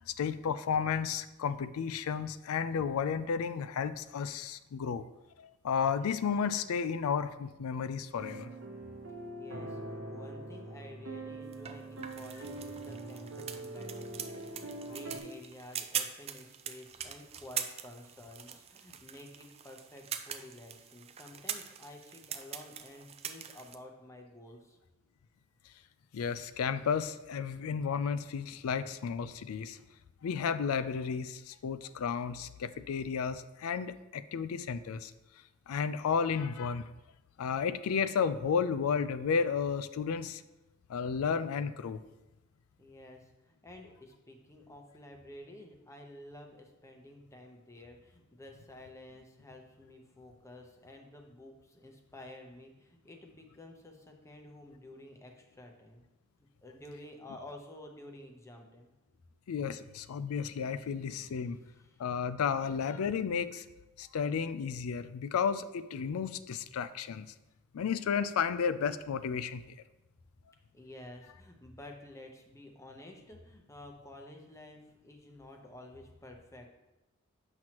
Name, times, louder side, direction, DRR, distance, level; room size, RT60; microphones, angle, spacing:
voice 1, 0.1-5.0 5.4-8.5 26.1-29.8 30.2-35.1 35.7-36.9 37.4-40.4 40.9-42.0 59.5-61.6 62.0-63.6 64.0-67.3 67.7-69.6, left 6 dB, 75° left, 13 dB, 0.4 m, -32 dB
sound 1, 8.2-15.2, right 2 dB, 65° right, 0.8 m, -43 dB
voice 2, 9.4-24.8 42.8-56.0 56.6-58.9 61.2-62.0 70.7-76.7, left 1 dB, 15° left, 2 dB, 0.8 m, -51 dB
sound 2, 11.5-23.8, right 9 dB, 30° right, 0.4 m, -42 dB
7.6 x 5.9 x 3.0 m, 1.0 s
head